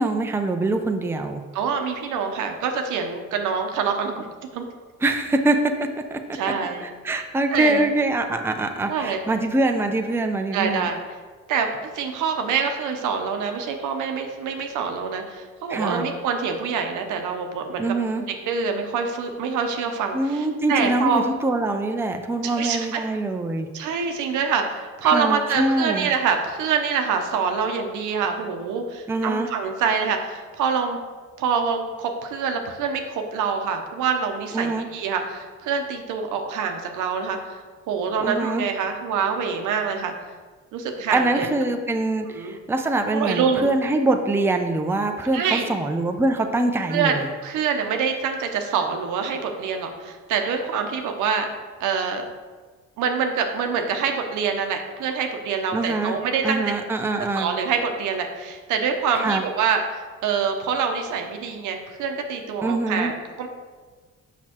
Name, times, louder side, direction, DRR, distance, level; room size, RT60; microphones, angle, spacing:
voice 1, 0.0-1.4 5.0-6.2 7.0-10.9 15.7-16.1 17.8-18.2 20.1-23.7 25.0-26.1 29.1-29.5 34.5-34.9 38.2-38.7 41.1-47.3 55.7-56.2 56.4-57.5 59.1-59.4 62.6-63.1, right 2 dB, 10° right, 5 dB, 0.5 m, -24 dB
voice 2, 1.5-4.3 4.5-4.7 6.3-6.8 7.5-7.9 8.9-9.2 10.5-11.0 11.5-17.9 18.1-21.3 22.4-23.0 23.7-31.0 31.4-37.6 37.9-40.1 40.7-41.5 42.3-42.5 43.1-43.7 45.3-45.7 46.9-51.5 51.8-52.2 53.0-56.7 57.3-63.5, right 6 dB, 85° right, 4 dB, 0.8 m, -25 dB
6.3 x 5.9 x 2.9 m, 1.4 s
cardioid pair, 90°, 30 cm